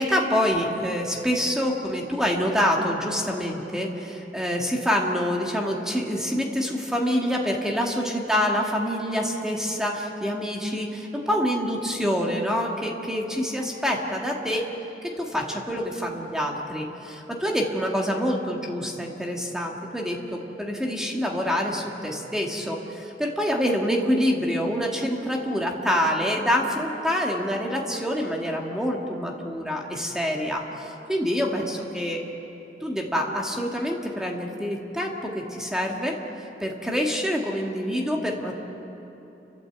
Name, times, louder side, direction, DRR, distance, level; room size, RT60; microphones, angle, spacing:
voice 1, 0.0-14.7 15.0-32.2 32.8-36.2 36.6-38.5, equal, 5° right, 0 dB, 2.0 m, -26 dB
29.5 x 13.0 x 8.1 m, 3.0 s
head